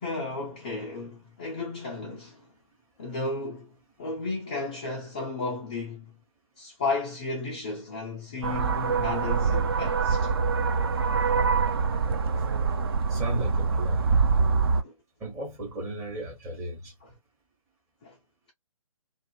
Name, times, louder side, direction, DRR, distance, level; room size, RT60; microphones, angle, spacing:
voice 1, 0.0-2.5 3.0-6.2 6.6-10.3 14.8-14.9 18.0-18.2, left 3 dB, 15° left, 0.3 m, -34 dB
sound 1, 8.4-14.8, right 5 dB, 45° right, 0.5 m, -25 dB
voice 2, 13.1-14.1 15.2-16.9, right 1 dB, 15° right, 1.0 m, -34 dB
2.4 x 2.4 x 2.3 m
figure-of-eight pair, 140°, 18 cm